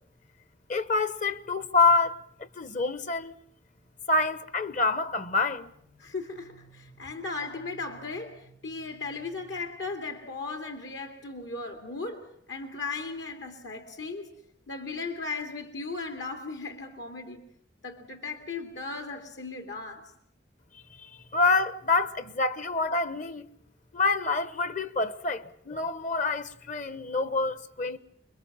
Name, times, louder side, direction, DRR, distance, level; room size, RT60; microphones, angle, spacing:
voice 1, 0.7-3.3 4.1-5.7 21.3-23.5 23.9-28.0, left 3 dB, 45° left, 1.1 m, -27 dB
sound 1, 5.3-10.5, right 4 dB, 85° left, 2.2 m, -58 dB
voice 2, 6.0-14.3 14.7-17.4 17.8-20.1, left 3 dB, 70° left, 2.6 m, -37 dB
28.0 x 22.5 x 7.2 m
head